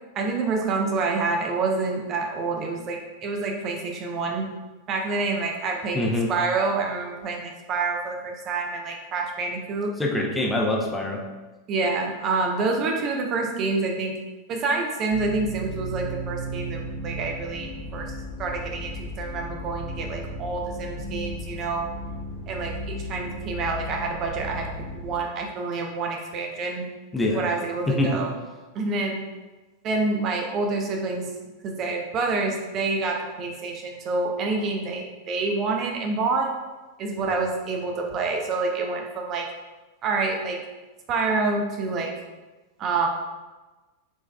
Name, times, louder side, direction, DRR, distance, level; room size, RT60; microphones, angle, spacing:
voice 1, 0.2-4.5 4.9-6.0 6.3-9.9 11.7-14.2 14.5-18.1 18.4-21.9 22.5-24.7 24.9-26.8 27.3-28.3 28.7-29.3 29.8-31.3 31.6-36.5 37.0-39.5 40.0-40.6 41.1-42.1 42.8-43.1, right 3 dB, 35° right, 1 dB, 0.5 m, -27 dB
voice 2, 5.9-6.3 10.0-11.2 27.1-27.4 27.9-28.2, left 1 dB, 10° left, -1 dB, 0.7 m, -24 dB
sound 1, 15.1-25.2, equal, 60° left, 1.2 m, -35 dB
5.2 x 3.4 x 2.3 m, 1.2 s
figure-of-eight pair, 90°, 0 cm